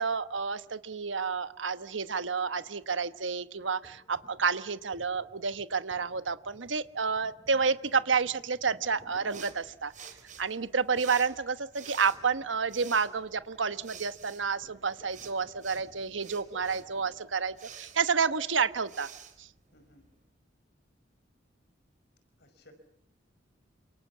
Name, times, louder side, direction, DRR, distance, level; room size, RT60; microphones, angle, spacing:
voice 1, 0.0-9.9 10.4-19.1 19.4-19.5, right 5 dB, 80° right, 12 dB, 1.2 m, -30 dB
sound 1, 3.8-10.2 11.0-11.3 11.6-17.3, equal, 20° left, 3.3 m, -58 dB
sound 2, 9.3-20.2, right 7 dB, 45° right, 3.8 m, -50 dB
voice 2, 19.7-20.1 22.4-22.7, left 2 dB, 60° left, 8 dB, 5.4 m, -59 dB
29.0 x 26.5 x 7.3 m, 0.73 s
head